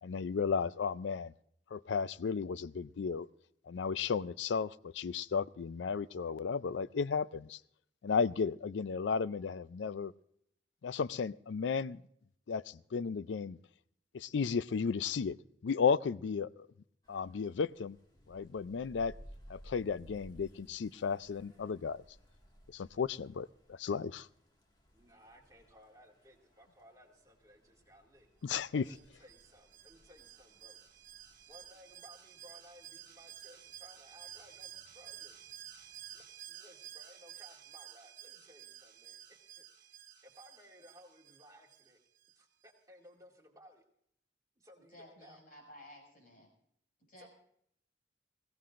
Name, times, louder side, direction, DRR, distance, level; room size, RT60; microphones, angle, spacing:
voice 1, 0.0-1.3 1.7-3.3 3.7-7.6 8.0-10.1 10.8-12.0 12.5-13.6 14.1-15.4 15.6-16.7 17.1-18.0 18.3-19.1 19.5-22.0 22.7-24.3 28.4-28.8, left 5 dB, 80° left, 0.4 m, -34 dB
sound 1, 17.0-36.2, equal, 25° left, 1.9 m, -61 dB
voice 2, 24.9-28.3 28.7-30.8 31.5-35.5 36.1-39.6 40.2-42.0 42.3-43.8 44.6-45.4 47.2-47.3, equal, 20° right, 2.2 m, -60 dB
Alarm, 28.8-42.3 42.6-42.7, right 11 dB, 50° right, 1.5 m, -53 dB
voice 3, 44.9-46.5 47.1-47.3, left 1 dB, 50° left, 6.0 m, -55 dB
21.5 x 16.5 x 2.5 m
head